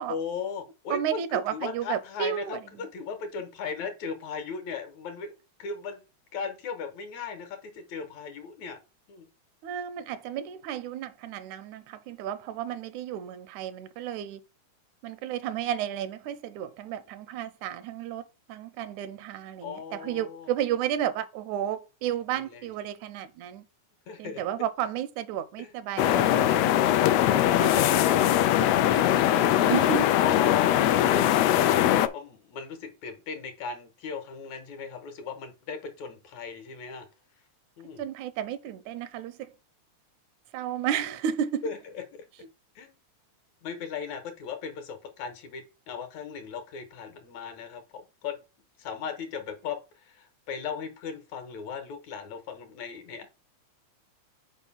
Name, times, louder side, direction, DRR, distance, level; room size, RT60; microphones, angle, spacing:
voice 1, 0.1-6.0 6.3-8.8 9.1-9.3 19.6-20.5 22.3-22.7 24.1-24.4 25.6-25.7 30.1-37.1 37.8-38.0 41.6-42.3 42.8-42.9 43.6-48.4 48.8-53.3, left 6 dB, 75° left, 2.4 m, -37 dB
voice 2, 0.9-2.6 9.6-14.4 15.0-18.2 18.5-23.6 24.2-26.6 26.9-28.0 28.6-30.1 38.0-39.5 40.5-41.7, right 10 dB, 80° right, 2.0 m, -33 dB
sound 1, 26.0-32.1, left 12 dB, 90° left, 1.4 m, -21 dB
5.3 x 4.8 x 5.6 m
omnidirectional pair, 3.4 m